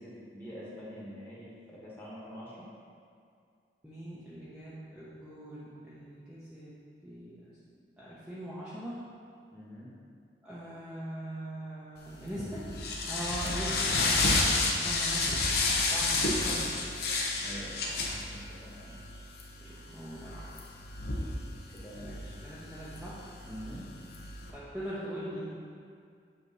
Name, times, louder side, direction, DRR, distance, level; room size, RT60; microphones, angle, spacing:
voice 1, 0.0-2.7 9.5-9.9 17.4-19.0 21.0-22.4 23.4-24.3, equal, 10° left, -8 dB, 1.4 m, -46 dB
voice 2, 3.8-6.7 7.0-7.6 8.0-9.0 10.4-12.7 13.1-14.3 14.6-15.5 15.9-16.7 19.6-20.5 22.0-23.2 24.5-25.5, right 1 dB, 5° right, -11 dB, 0.8 m, -41 dB
sound 1, 12.1-24.5, left 3 dB, 60° left, 0.8 m, -31 dB
8.2 x 2.9 x 5.4 m, 2.3 s
head